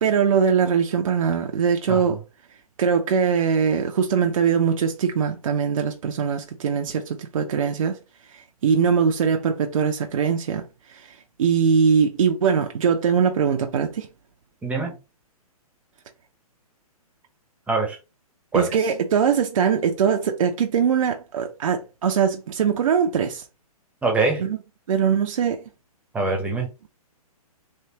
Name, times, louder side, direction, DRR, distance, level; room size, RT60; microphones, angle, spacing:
voice 1, 0.0-2.2 2.8-8.0 8.3-14.1 18.5-23.4 24.4-24.6 24.9-25.6, right 6 dB, 60° right, 0.6 m, -22 dB
voice 2, 1.9-2.2 14.6-15.0 17.7-18.0 18.5-18.9 24.0-24.4 26.1-26.7, right 3 dB, 5° right, 0.9 m, -24 dB
3.3 x 3.0 x 2.8 m
figure-of-eight pair, 130°, 19 cm